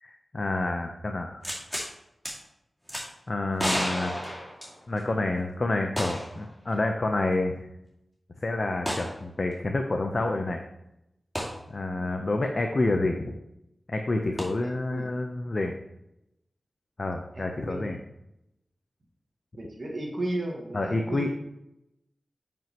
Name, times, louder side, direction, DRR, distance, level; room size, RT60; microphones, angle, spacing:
voice 1, 0.0-1.4 3.3-4.2 4.9-7.6 8.4-10.6 11.7-13.3 13.9-15.7 17.0-18.0 20.7-21.4, left 2 dB, 50° left, 3 dB, 0.7 m, -28 dB
sound 1, 1.4-1.9 2.2-2.3 2.9-3.0 3.6-5.1 6.0-6.4 6.7-6.8 8.8-9.1 11.3-11.5 14.4-14.5, equal, 5° left, 2.2 m, -31 dB
voice 2, 14.6-15.1 17.3-17.9 19.6-21.3, right 1 dB, 55° right, 0 dB, 1.6 m, -35 dB
8.9 x 5.2 x 3.0 m, 0.84 s
cardioid pair, 50°, 0 cm